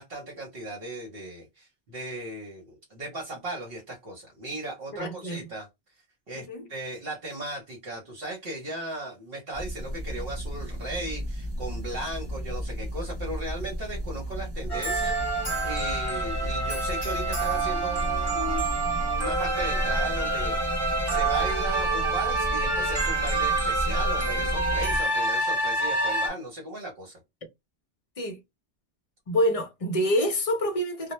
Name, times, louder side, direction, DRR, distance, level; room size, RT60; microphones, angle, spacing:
voice 1, 0.0-5.7 6.3-27.2, right 1 dB, 65° right, 1.0 m, -37 dB
voice 2, 5.0-5.4 6.3-6.7 28.2-28.4 29.3-31.1, equal, 45° left, 0.5 m, -26 dB
sound 1, 9.5-25.0, equal, 45° right, 0.3 m, -33 dB
sound 2, 14.7-26.3, right 2 dB, 30° right, 0.9 m, -27 dB
2.1 x 2.1 x 2.9 m
omnidirectional pair, 1.1 m